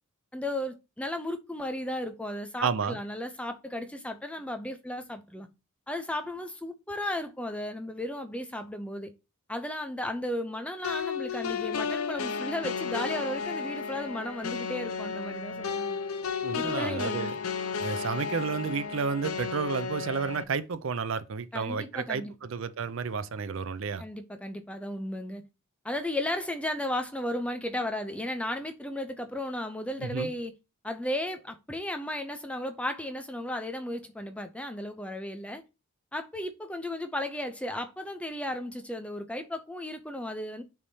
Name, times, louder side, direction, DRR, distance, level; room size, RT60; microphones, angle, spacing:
voice 1, 0.3-5.5 5.9-9.1 9.5-16.0 16.6-17.4 21.5-22.3 24.0-25.4 25.8-30.5 30.8-35.6 36.1-40.6, left 1 dB, 5° left, 0.4 m, -35 dB
voice 2, 2.6-3.0 16.4-17.4 17.8-24.0 30.0-30.3, right 5 dB, 60° right, 0.5 m, -31 dB
sound 1, 10.8-20.4, left 5 dB, 80° left, 0.6 m, -33 dB
9.7 x 3.5 x 2.7 m
head